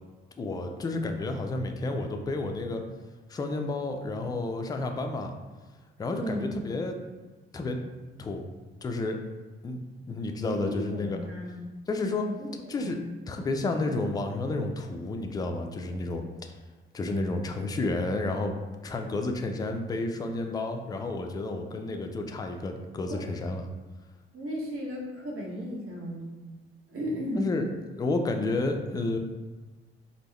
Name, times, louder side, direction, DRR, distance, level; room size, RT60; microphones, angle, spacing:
voice 1, 0.4-2.8 3.3-5.3 6.0-7.0 7.5-7.8 8.2-8.4 8.8-9.2 9.6-9.8 10.1-11.2 11.9-12.3 12.7-13.0 13.3-16.2 16.9-18.5 18.8-23.7 27.4-27.7 28.0-29.2, left 2 dB, 15° left, 4 dB, 0.3 m, -31 dB
voice 2, 6.2-6.6 10.4-11.7 12.2-12.5 12.8-13.0 23.1-23.2 24.3-26.6 26.9-27.5, equal, 45° right, -2 dB, 1.0 m, -35 dB
3.4 x 2.0 x 3.1 m, 1.3 s
figure-of-eight pair, 45°, 31 cm